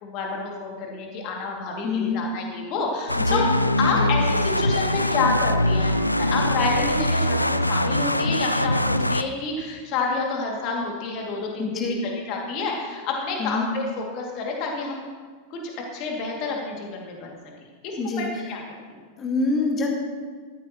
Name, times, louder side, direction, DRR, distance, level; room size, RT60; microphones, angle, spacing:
voice 1, 0.0-3.5 3.8-15.1 15.5-17.3 17.8-18.6, left 4 dB, 40° left, -1 dB, 2.5 m, -29 dB
voice 2, 1.8-2.2 3.2-3.5 3.9-4.1 11.6-12.0 13.4-13.7 18.0-18.3 19.2-19.9, left 4 dB, 25° left, 1 dB, 1.8 m, -26 dB
Dubstep Growl Sample, 3.1-9.2, left 1 dB, 85° left, 0.4 m, -22 dB
14.0 x 13.5 x 3.1 m, 1.6 s
figure-of-eight pair, 90°, 0 cm